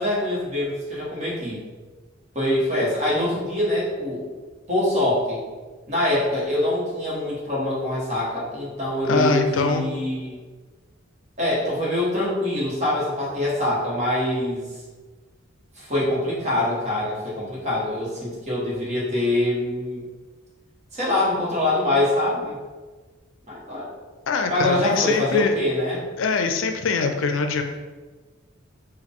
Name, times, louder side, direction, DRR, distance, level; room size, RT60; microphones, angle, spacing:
voice 1, 0.0-1.6 2.3-4.2 4.7-5.4 5.9-10.4 11.4-14.7 15.7-20.0 20.9-22.6 23.5-23.9 24.5-26.0, left 1 dB, 35° right, -6 dB, 1.4 m, -24 dB
voice 2, 9.1-9.9 24.3-25.5 26.2-27.6, left 4 dB, 75° left, 6 dB, 0.4 m, -23 dB
4.7 x 2.5 x 3.5 m, 1.4 s
head